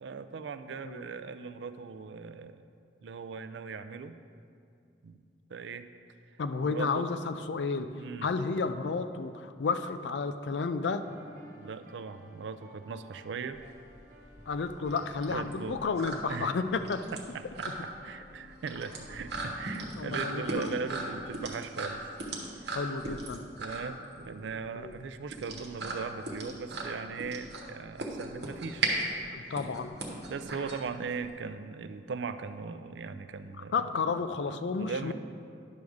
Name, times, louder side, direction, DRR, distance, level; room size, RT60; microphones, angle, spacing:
voice 1, 0.0-2.6 3.0-4.2 5.0-5.2 5.5-5.9 6.6-7.4 7.9-8.3 11.6-13.6 15.3-15.8 16.3-16.6 17.1-22.1 22.6-22.8 23.6-28.9 29.3-29.5 30.3-33.8 34.5-35.1, right 5 dB, 90° right, 11 dB, 0.4 m, -39 dB
voice 2, 6.4-7.9 8.2-11.0 14.5-17.0 20.0-20.7 22.7-23.4 24.7-24.9 29.3-29.9 33.7-35.1, left 4 dB, 85° left, 10 dB, 0.4 m, -32 dB
sound 1, 11.0-21.3, equal, 50° right, 0.9 m, -54 dB
sound 2, 13.5-31.3, right 2 dB, 70° right, 1.3 m, -37 dB
10.5 x 3.5 x 6.4 m, 2.4 s
head